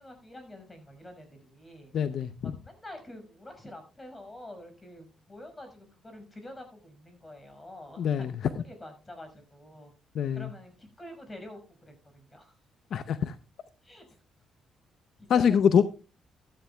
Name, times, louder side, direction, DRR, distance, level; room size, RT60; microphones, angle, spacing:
voice 1, 0.0-1.9 2.4-9.9 10.3-12.5 13.8-14.1 15.2-15.6, left 1 dB, 20° left, 5.6 m, -47 dB
voice 2, 1.9-2.5 8.0-8.6 10.2-10.5 12.9-13.3 15.3-15.8, left 7 dB, 65° left, 0.6 m, -25 dB
14.0 x 13.0 x 2.3 m
cardioid pair, 90°, 0 cm